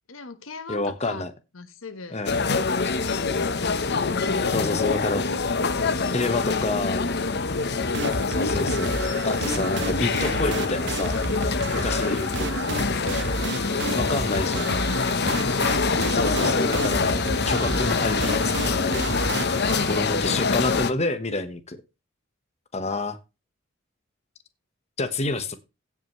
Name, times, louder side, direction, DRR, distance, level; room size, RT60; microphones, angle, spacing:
voice 1, 0.1-1.2 1.5-2.2 2.8-3.6 4.4-5.0 6.9-7.3 12.3-12.9 13.6-15.3 22.8-23.0, left 3 dB, 70° left, 1.3 m, -40 dB
voice 2, 0.7-1.3 2.1-2.4 2.8-3.0 4.5-5.2 6.1-7.1 8.3-11.2 11.7-12.6 13.9-14.7 16.1-19.1 19.8-21.8 22.7-23.2 25.0-25.6, left 2 dB, 35° left, 1.2 m, -28 dB
sound 1, 2.3-20.9, left 4 dB, 55° left, 0.9 m, -25 dB
sound 2, 7.9-20.0, right 3 dB, 60° right, 0.9 m, -32 dB
16.5 x 5.9 x 3.1 m
head